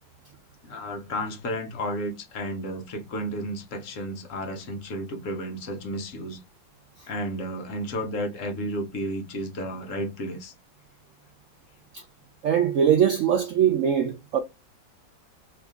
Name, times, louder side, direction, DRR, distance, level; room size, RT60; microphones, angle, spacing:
voice 1, 0.6-6.4 7.1-10.5, equal, 60° left, 0.9 m, -32 dB
voice 2, 12.4-14.4, right 9 dB, 80° right, 0.7 m, -21 dB
2.8 x 2.5 x 3.5 m
omnidirectional pair, 2.0 m